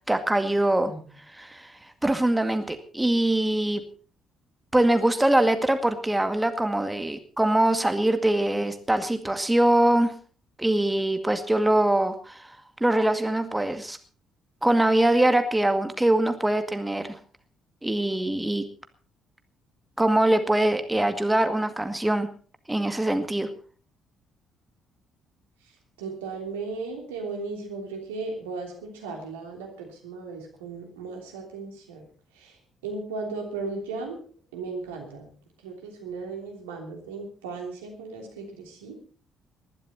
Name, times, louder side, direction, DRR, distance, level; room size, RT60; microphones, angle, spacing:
voice 1, 0.1-0.9 1.3-1.7 2.0-3.8 4.7-10.1 10.6-12.5 12.8-14.0 14.6-17.2 17.8-18.6 20.0-22.3 22.7-23.5, right 1 dB, 10° right, 8 dB, 2.1 m, -23 dB
voice 2, 26.0-32.0 32.3-32.6 32.8-34.2 34.5-35.3 35.6-39.0, right 4 dB, 80° right, 2 dB, 3.2 m, -36 dB
20.0 x 12.0 x 4.2 m, 0.40 s
figure-of-eight pair, 45°, 0 cm